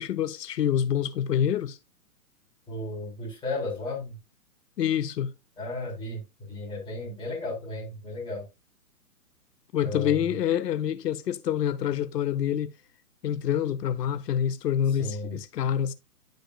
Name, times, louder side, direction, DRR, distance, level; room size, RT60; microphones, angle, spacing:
voice 1, 0.0-1.8 4.8-5.3 9.7-12.7 13.2-15.9, left 9 dB, 80° left, 0.6 m, -27 dB
voice 2, 2.7-4.1 5.6-6.2 6.5-8.4 9.8-10.2 15.0-15.4, left 2 dB, 10° left, 3.3 m, -34 dB
10.5 x 5.1 x 2.3 m
hypercardioid pair, 140°, 48 cm